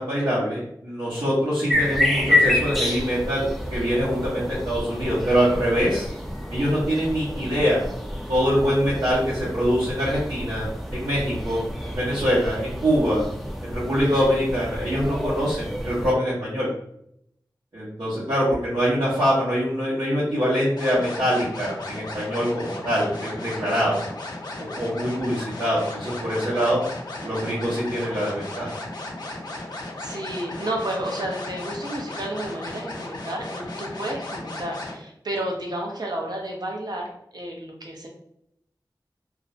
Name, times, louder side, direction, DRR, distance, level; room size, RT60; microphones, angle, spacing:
voice 1, 0.0-6.1 6.5-7.8 8.3-10.7 10.9-13.2 13.6-16.7 17.7-24.0 24.7-26.8 27.2-28.7, equal, 85° right, -11 dB, 0.9 m, -24 dB
sound 1, 1.7-16.1, left 1 dB, ahead, 0.5 m, -28 dB
sound 2, 20.8-35.0, left 2 dB, 65° left, 0.6 m, -35 dB
voice 2, 29.7-38.1, right 1 dB, 60° right, 0 dB, 0.6 m, -31 dB
2.5 x 2.1 x 2.5 m, 0.74 s
wide cardioid pair, 45°, 8 cm